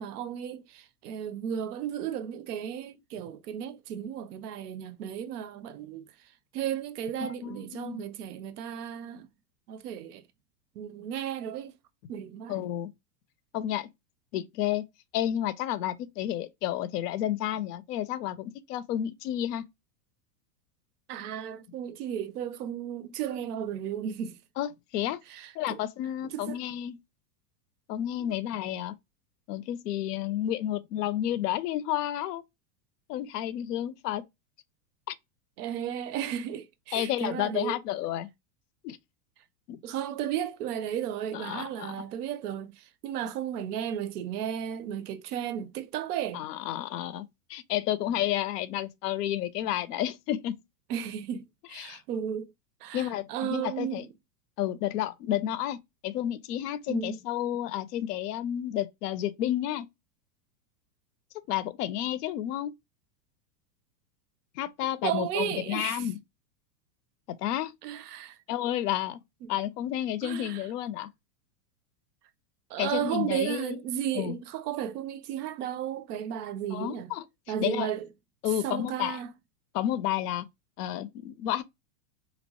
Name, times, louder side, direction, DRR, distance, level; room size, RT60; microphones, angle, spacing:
voice 1, 0.0-6.1 6.5-9.3 9.7-10.2 10.8-11.7 12.1-12.7 21.1-24.4 25.3-25.8 26.3-26.6 35.6-37.8 39.8-46.4 50.9-52.5 52.8-54.1 56.9-57.2 65.0-66.1 67.8-68.4 69.4-69.5 70.2-70.7 72.7-77.1 77.5-78.0 78.6-79.3, right 9 dB, 75° right, 0.6 m, -34 dB
voice 2, 7.2-8.0 12.5-12.9 13.5-13.9 14.3-14.8 15.1-19.6 24.6-25.2 25.6-27.0 27.9-28.9 29.5-32.4 33.1-34.2 35.1-35.2 36.9-38.3 38.8-39.0 39.7-39.8 41.3-42.0 46.3-50.6 51.7-52.0 52.9-54.0 54.6-59.9 61.5-62.7 64.6-66.2 67.3-67.7 68.5-69.2 69.5-71.1 72.8-73.8 74.2-74.4 76.7-77.2 77.6-77.9 78.4-79.2 79.7-80.5 80.8-81.6, left 12 dB, 90° left, 0.5 m, -31 dB
2.9 x 2.0 x 2.8 m
supercardioid pair, 160°, 46 cm